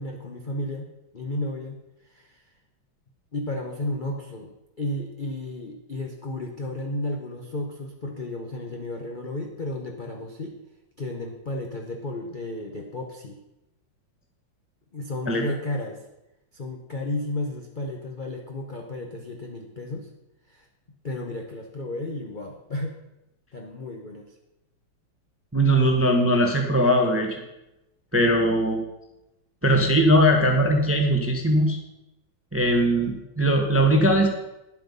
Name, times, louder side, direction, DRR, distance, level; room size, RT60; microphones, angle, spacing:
voice 1, 0.0-1.8 2.0-2.4 3.3-10.6 11.0-13.4 14.9-16.0 16.5-20.1 20.5-20.6 21.0-23.0 23.5-24.3, left 1 dB, 40° left, 1 dB, 0.6 m, -33 dB
voice 2, 25.5-27.4 28.1-28.8 29.6-31.8 32.5-34.3, equal, 10° right, 3 dB, 0.7 m, -20 dB
10.0 x 7.8 x 5.3 m, 0.93 s
omnidirectional pair, 2.2 m